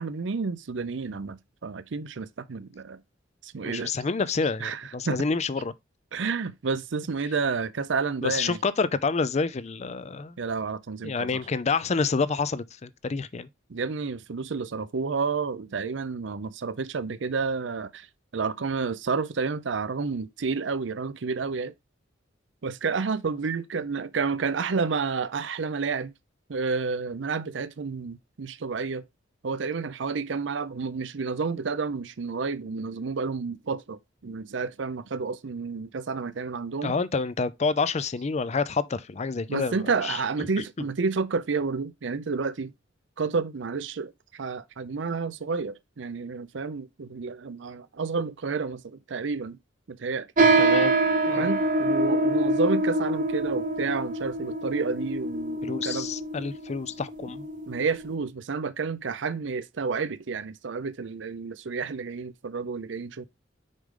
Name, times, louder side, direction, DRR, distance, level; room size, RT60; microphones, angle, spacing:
voice 1, 0.0-3.0 3.4-3.9 4.6-5.2 6.1-8.6 10.4-11.3 13.7-18.1 18.3-21.7 22.6-26.1 26.5-29.0 29.4-36.9 39.5-42.7 43.2-49.6 49.9-50.3 51.4-56.1 57.7-63.3, right 4 dB, 70° right, 0.6 m, -30 dB
voice 2, 3.6-5.7 8.2-10.4 11.0-13.5 36.8-40.6 50.6-50.9 51.3-51.5 55.6-57.5, left 4 dB, 35° left, 0.5 m, -28 dB
sound 1, 50.4-58.1, right 2 dB, 45° right, 1.0 m, -25 dB
6.4 x 5.0 x 3.7 m
head